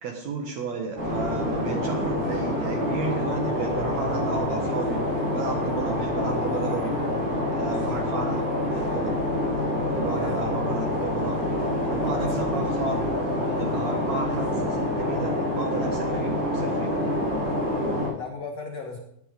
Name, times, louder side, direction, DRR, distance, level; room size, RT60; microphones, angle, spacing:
voice 1, 0.0-6.9 7.5-9.2 9.9-11.4 11.8-13.1 13.5-16.9, right 4 dB, 65° right, 1 dB, 1.7 m, -33 dB
sound 1, 1.0-18.1, left 1 dB, 85° right, 9.1 m, -26 dB
voice 2, 10.2-10.5 12.0-12.9 13.2-13.3 18.2-19.0, left 4 dB, 80° left, 1 dB, 1.4 m, -37 dB
16.5 x 10.0 x 5.2 m, 0.73 s
omnidirectional pair, 5.5 m